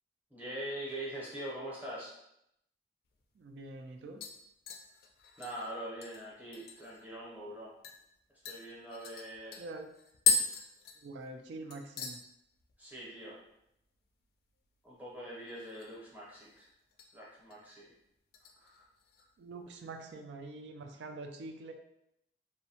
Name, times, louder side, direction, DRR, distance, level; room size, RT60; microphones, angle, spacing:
voice 1, 0.3-2.1 5.4-7.7 8.4-9.6 12.8-13.4 14.8-16.7 17.1-17.9 18.6-18.8, right 1 dB, 10° right, -6 dB, 0.7 m, -43 dB
sound 1, 3.1-3.2 3.6-3.9 4.2-7.0 7.4-7.5 7.8-8.0 8.4-11.4 11.7-12.2 12.5-12.9 13.2-13.3 15.4-16.0 16.4-17.1 17.5-17.8 18.3-19.2 19.6-19.7, left 5 dB, 55° left, 0.3 m, -36 dB
voice 2, 3.4-4.2 9.6-9.9 11.0-12.2 19.4-21.7, right 2 dB, 75° right, 5 dB, 0.3 m, -45 dB
2.7 x 2.1 x 2.7 m, 0.80 s
head